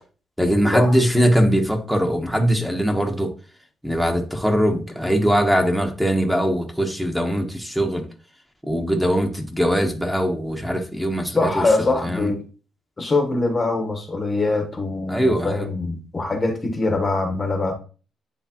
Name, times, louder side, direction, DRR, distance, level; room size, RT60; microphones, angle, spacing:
voice 1, 0.4-3.3 3.8-8.0 8.7-12.3 15.1-15.7, equal, 5° right, 1.1 m, -21 dB
voice 2, 11.3-12.4 13.0-17.7, left 3 dB, 25° left, 1.1 m, -23 dB
9.8 x 3.3 x 2.9 m
cardioid pair, 90°, 0 cm